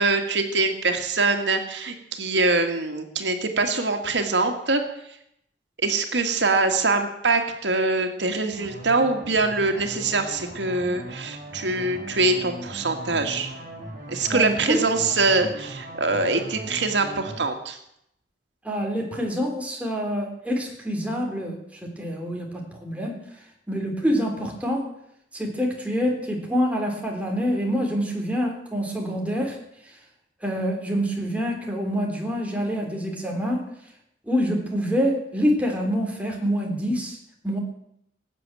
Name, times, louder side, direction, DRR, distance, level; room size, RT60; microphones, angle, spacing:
voice 1, 0.0-5.2 5.8-13.5 14.1-17.8, right 3 dB, 90° right, 5 dB, 2.1 m, -24 dB
sound 1, 8.5-17.4, right 1 dB, 50° right, 6.3 m, -39 dB
voice 2, 14.3-14.8 18.6-23.2 23.7-24.9 25.3-29.6 30.4-33.7 34.3-37.2 37.4-37.6, equal, 10° right, 0 dB, 3.5 m, -26 dB
19.5 x 7.9 x 9.1 m, 0.76 s
head